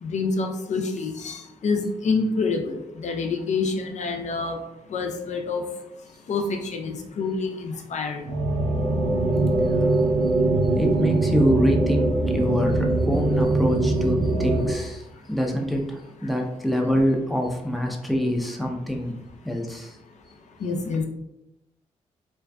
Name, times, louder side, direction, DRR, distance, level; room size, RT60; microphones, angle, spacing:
voice 1, 0.0-4.6 4.9-5.6 6.3-8.3 16.8-16.9 20.6-21.1, left 4 dB, 55° left, 3 dB, 0.5 m, -27 dB
sound 1, 8.3-14.7, right 2 dB, 85° right, 0.5 m, -22 dB
voice 2, 10.8-19.2 19.4-20.0, equal, ahead, 1 dB, 0.6 m, -25 dB
2.6 x 2.3 x 2.2 m, 0.86 s
supercardioid pair, 45°, 14 cm